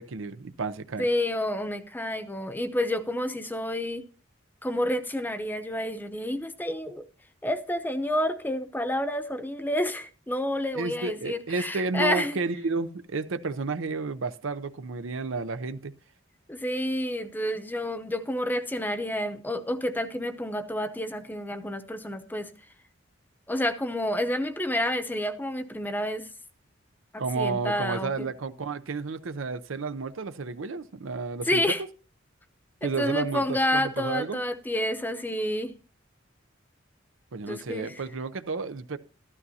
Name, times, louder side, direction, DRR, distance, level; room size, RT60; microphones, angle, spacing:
voice 1, 0.0-1.1 10.7-15.9 27.2-31.6 32.8-34.4 37.3-39.0, right 4 dB, 90° right, 0.7 m, -31 dB
voice 2, 1.0-4.0 4.6-7.1 7.4-12.4 16.5-22.5 23.5-26.2 27.1-28.3 31.5-31.8 32.8-35.7 37.5-37.9, left 1 dB, 10° left, 0.7 m, -29 dB
14.0 x 12.0 x 2.8 m
head